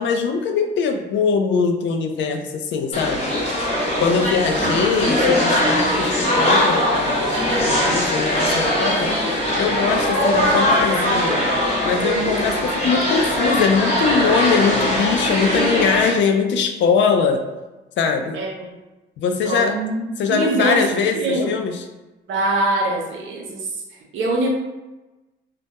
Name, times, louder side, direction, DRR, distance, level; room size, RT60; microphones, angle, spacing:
voice 1, 0.0-3.3 4.0-9.1 9.6-11.4 11.8-17.4 18.0-18.4 19.2-19.8 20.2-21.8, left 5 dB, 65° left, 5 dB, 0.4 m, -21 dB
sound 1, 2.9-16.1, left 1 dB, 30° left, 0.9 m, -20 dB
voice 2, 18.3-18.8 19.5-20.0 20.3-21.6 22.3-23.8 24.1-24.5, right 2 dB, 75° right, 0 dB, 0.6 m, -23 dB
2.2 x 2.0 x 2.8 m, 1.1 s
cardioid pair, 90°, 20 cm